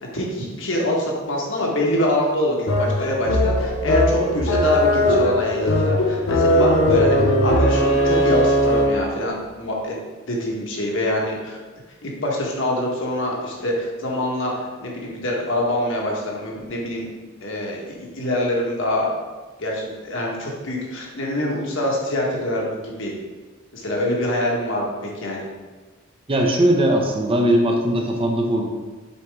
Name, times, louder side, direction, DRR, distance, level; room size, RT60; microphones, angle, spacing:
voice 1, 0.0-9.9 10.3-11.6 12.0-17.1 17.4-19.1 19.6-23.2 23.7-25.5, left 1 dB, 70° left, -2 dB, 1.4 m, -25 dB
sound 1, 2.7-9.1, left 1 dB, 85° left, 0.9 m, -19 dB
voice 2, 26.3-28.7, right 1 dB, 25° right, 2 dB, 0.8 m, -19 dB
7.0 x 4.6 x 3.6 m, 1.3 s
head